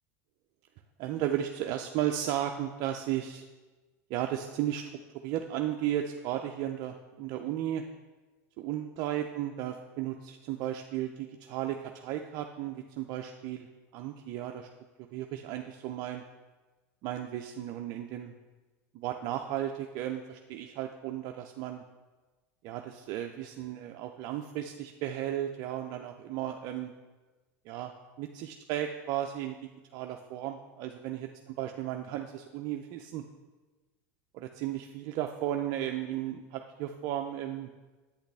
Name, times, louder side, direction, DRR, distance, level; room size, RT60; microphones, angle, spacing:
voice 1, 1.0-3.4 4.1-4.8 5.2-7.8 8.6-13.7 13.9-14.7 15.1-16.2 17.0-18.3 18.9-21.8 22.6-26.9 27.7-27.9 28.2-29.6 29.9-31.3 31.6-33.2 34.3-37.7, right 11 dB, 55° right, 4 dB, 0.5 m, -34 dB
8.3 x 8.0 x 3.4 m, 1.2 s
hypercardioid pair, 100°, 9 cm